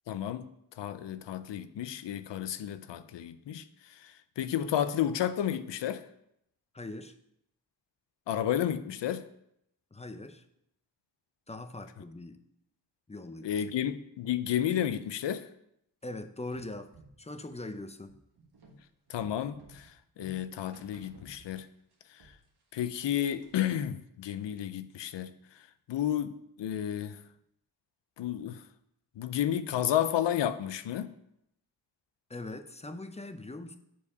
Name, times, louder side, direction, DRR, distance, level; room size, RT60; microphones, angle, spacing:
voice 1, 0.1-0.5 0.8-6.1 8.3-9.2 13.4-15.5 19.1-21.7 22.1-22.3 22.7-25.3 25.9-27.2 28.2-28.6 29.2-31.1, left 10 dB, 90° left, 0.5 m, -32 dB
voice 2, 6.7-7.1 9.9-10.4 11.5-12.4 13.1-13.7 16.0-16.9 17.2-18.1 32.3-33.8, left 2 dB, 15° left, 0.6 m, -41 dB
sound 1, 16.5-21.9 22.2-23.7, right 1 dB, 65° right, 1.4 m, -56 dB
7.2 x 4.7 x 5.3 m
cardioid pair, 60°, 41 cm